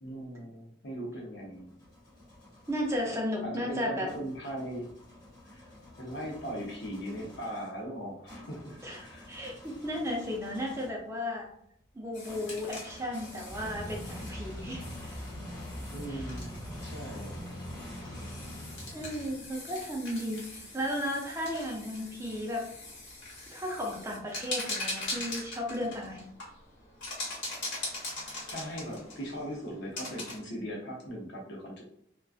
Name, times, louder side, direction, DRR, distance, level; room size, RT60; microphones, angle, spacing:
voice 1, 0.0-1.7 3.1-3.2 3.4-4.9 5.4-5.6 6.0-9.3 15.9-17.4 28.5-31.8, equal, 70° left, -1 dB, 0.7 m, -39 dB
sound 1, 1.3-3.1 4.1-11.1 12.2-19.5, equal, 20° left, 1.3 m, -44 dB
voice 2, 2.7-4.1 8.8-11.5 12.0-14.8 16.1-16.2 18.9-22.7 23.5-26.2, equal, 15° right, -2 dB, 0.4 m, -34 dB
sound 2, 12.1-30.4, left 2 dB, 90° left, 1.1 m, -42 dB
2.4 x 2.2 x 2.3 m, 0.71 s
head